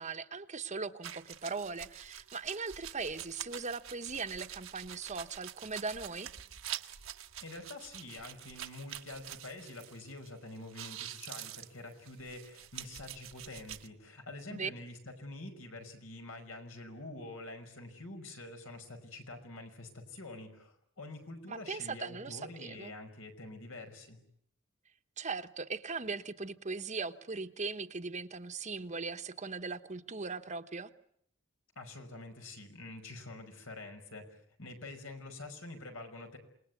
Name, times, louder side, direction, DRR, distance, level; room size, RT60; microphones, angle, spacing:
voice 1, 0.0-6.3 14.5-14.7 21.5-22.9 25.2-30.9, right 4 dB, 35° right, 1.1 m, -39 dB
sound 1, 1.0-10.3 10.6-13.9, right 11 dB, 75° right, 1.2 m, -46 dB
voice 2, 7.4-24.2 31.8-36.4, left 2 dB, 75° left, 5.5 m, -47 dB
28.0 x 20.0 x 9.5 m
head